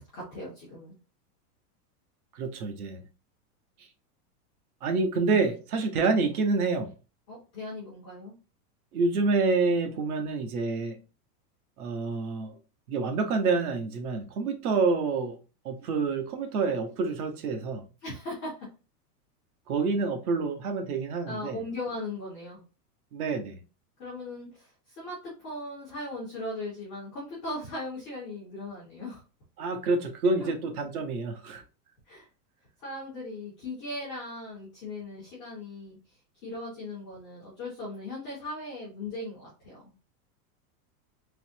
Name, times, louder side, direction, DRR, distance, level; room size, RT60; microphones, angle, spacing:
voice 1, 0.1-1.0 7.3-8.3 18.0-18.7 21.2-22.6 24.0-29.2 30.4-30.5 32.1-32.3 32.8-36.0 36.4-39.9, left 2 dB, 5° left, 0.3 m, -38 dB
voice 2, 2.3-3.0 4.8-6.9 8.9-11.0 11.8-12.6 12.9-15.4 15.6-17.8 19.7-21.6 23.1-23.6 29.6-31.6, right 4 dB, 70° right, 1.1 m, -27 dB
4.0 x 3.0 x 2.7 m
supercardioid pair, 175°, 46 cm